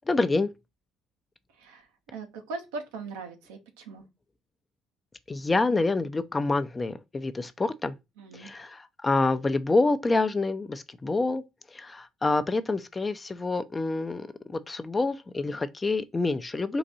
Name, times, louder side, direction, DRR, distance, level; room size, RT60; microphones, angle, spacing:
voice 1, 0.1-0.5 5.3-7.9 8.3-11.4 11.7-16.8, left 3 dB, 25° left, 0.6 m, -27 dB
voice 2, 1.6-4.0 8.2-8.5, right 3 dB, 85° right, 0.9 m, -40 dB
3.9 x 2.6 x 4.1 m
hypercardioid pair, 65°, 0 cm